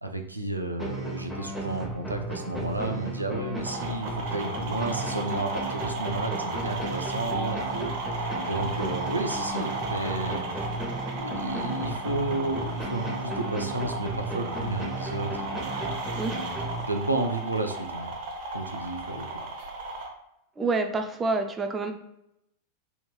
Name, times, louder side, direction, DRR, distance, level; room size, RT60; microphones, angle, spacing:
voice 1, 0.0-10.4 11.1-15.9 16.9-18.1 18.5-19.5, right 2 dB, 85° right, 4 dB, 0.4 m, -32 dB
sound 1, 0.8-17.3, right 1 dB, ahead, 1.0 m, -35 dB
sound 2, 3.6-20.1, right 2 dB, 50° right, 0.8 m, -35 dB
voice 2, 20.6-21.9, right 3 dB, 20° right, 5 dB, 0.4 m, -27 dB
3.5 x 3.0 x 2.2 m, 0.84 s
figure-of-eight pair, 90°, 0 cm